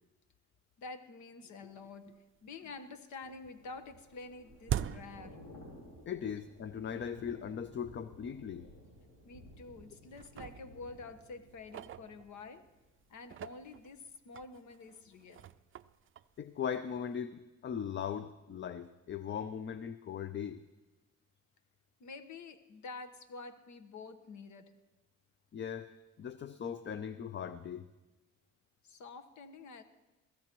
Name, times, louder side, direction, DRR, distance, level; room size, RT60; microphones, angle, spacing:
voice 1, 0.8-5.4 9.2-12.6 13.1-15.5 22.0-24.7 28.8-29.8, left 3 dB, 75° left, 10 dB, 1.2 m, -48 dB
sound 1, 1.9-2.0 2.4-3.0 3.2-6.1 6.4-6.5 7.3-7.4 7.9-8.0 8.3-8.5 9.2-9.7 10.1-12.7 13.2-17.1, right 10 dB, 45° right, 0.4 m, -44 dB
Thunder / Rain, 3.3-13.2 13.5-13.8, left 1 dB, 90° left, 4.9 m, -56 dB
voice 2, 6.1-8.7 16.4-20.6 25.5-25.9 26.2-27.9, left 8 dB, 40° left, 12 dB, 0.5 m, -39 dB
22.5 x 16.0 x 3.0 m, 1.1 s
cardioid pair, 90°, 30 cm